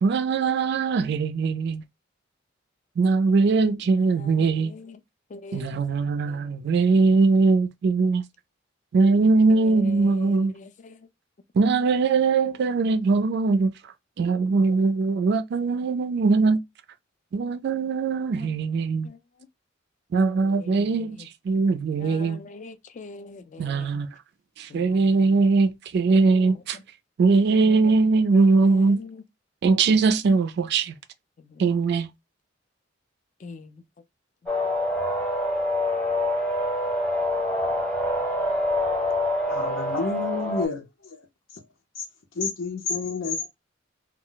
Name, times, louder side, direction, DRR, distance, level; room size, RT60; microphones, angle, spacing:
voice 1, 0.0-1.8 3.0-4.7 5.5-8.2 8.9-10.5 11.5-13.7 14.2-16.6 17.3-19.1 20.1-21.2 21.4-22.4 23.6-24.1 24.6-26.8 27.2-29.0 29.6-30.9 31.6-32.1, right 4 dB, 60° right, 0.3 m, -21 dB
voice 2, 3.8-5.0 5.3-5.8 6.3-6.6 7.1-7.2 9.5-11.0 19.0-19.2 20.1-21.3 22.0-23.9 24.7-25.5 26.1-26.8 27.5-27.9 28.3-29.2 31.4-31.7 33.4-33.8, left 3 dB, 40° left, 0.4 m, -43 dB
sound 1, 34.5-40.6, left 1 dB, 5° left, 0.8 m, -26 dB
voice 3, 39.5-41.2 41.5-41.6 41.9-42.0 42.3-43.5, left 4 dB, 90° left, 0.7 m, -29 dB
2.3 x 2.1 x 3.8 m
head